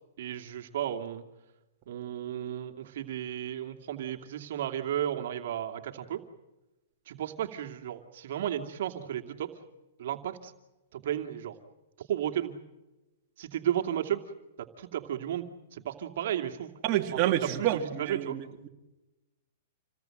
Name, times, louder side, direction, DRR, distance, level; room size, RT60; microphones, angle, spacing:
voice 1, 0.2-1.2 1.9-6.2 7.1-9.5 10.0-10.5 10.9-11.6 12.0-12.5 13.4-14.2 14.6-15.5 15.7-16.7 17.1-18.4, right 11 dB, 65° right, 4 dB, 2.6 m, -33 dB
voice 2, 16.8-18.7, right 12 dB, 35° right, 0 dB, 3.1 m, -29 dB
28.5 x 19.0 x 7.9 m, 1.0 s
hypercardioid pair, 145°, 0 cm